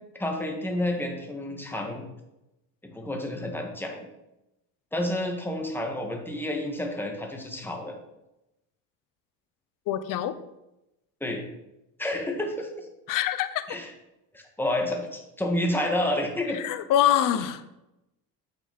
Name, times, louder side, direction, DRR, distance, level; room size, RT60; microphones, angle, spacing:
voice 1, 0.2-2.1 2.8-4.1 4.9-7.9 11.2-11.4 12.0-12.9 13.7-13.9 14.3-16.6, left 1 dB, 5° left, 1 dB, 2.0 m, -30 dB
voice 2, 9.9-10.4 13.1-13.6 16.5-17.7, left 11 dB, 65° left, 12 dB, 0.9 m, -24 dB
8.8 x 6.3 x 5.5 m, 0.91 s
cardioid pair, 110°, 35 cm